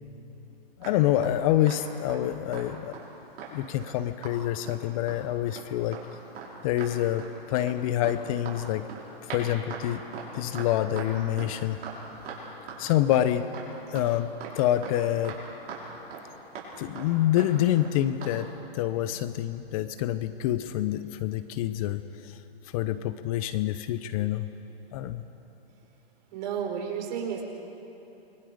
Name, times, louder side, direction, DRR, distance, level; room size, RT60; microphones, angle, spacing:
voice 1, 0.8-2.9 3.5-6.0 6.6-8.9 9.3-10.0 10.3-11.8 12.8-13.5 13.9-14.3 14.5-15.4 16.8-18.5 18.7-22.4 22.7-24.5 24.9-25.2, left 12 dB, 35° left, 12 dB, 0.7 m, -27 dB
sound 1, 0.8-2.2 2.5-2.7 2.9-3.9 4.2-4.4 4.7-5.2 5.5-5.7 5.9-6.0 6.3-6.5 6.8-7.3 7.6-12.8 13.1-13.2 13.5-15.4 15.7-16.2 16.5-16.7 16.9-17.1 17.4-17.5 17.8-17.9 18.2-18.4, right 6 dB, 30° right, 6.0 m, -40 dB
voice 2, 26.3-27.4, right 7 dB, 45° right, 1 dB, 4.8 m, -32 dB
28.5 x 22.5 x 5.1 m, 3.0 s
hypercardioid pair, 130°, 31 cm